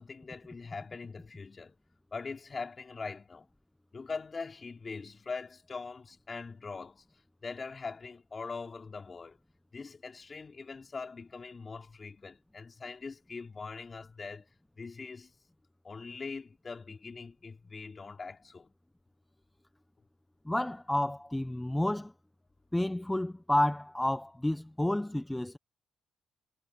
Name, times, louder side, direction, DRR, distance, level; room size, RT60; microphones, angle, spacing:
voice 1, 0.0-1.8 2.1-3.5 3.9-7.0 7.4-9.4 9.7-14.5 14.8-15.3 15.8-18.7, left 4 dB, 35° left, 4.1 m, -42 dB
voice 2, 20.5-22.1 22.7-25.6, left 1 dB, 10° left, 0.9 m, -30 dB
cardioid pair, 90°, 0 cm